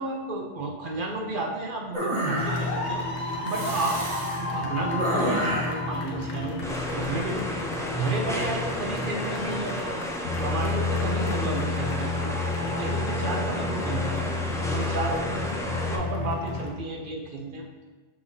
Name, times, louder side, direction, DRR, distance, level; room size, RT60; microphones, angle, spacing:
voice 1, 0.0-4.0 4.4-6.6 6.9-7.5 7.9-9.9 10.4-14.2 14.7-15.5 15.9-17.6, right 2 dB, 50° right, 1 dB, 0.8 m, -32 dB
sound 1, 1.9-2.9 3.5-4.4 5.0-5.8, right 1 dB, 25° right, 1.2 m, -29 dB
sound 2, 2.4-16.7, left 3 dB, 70° left, 1.2 m, -31 dB
sound 3, 6.6-16.0, equal, 5° left, 0.3 m, -33 dB
6.5 x 5.8 x 2.7 m, 1.3 s
omnidirectional pair, 1.2 m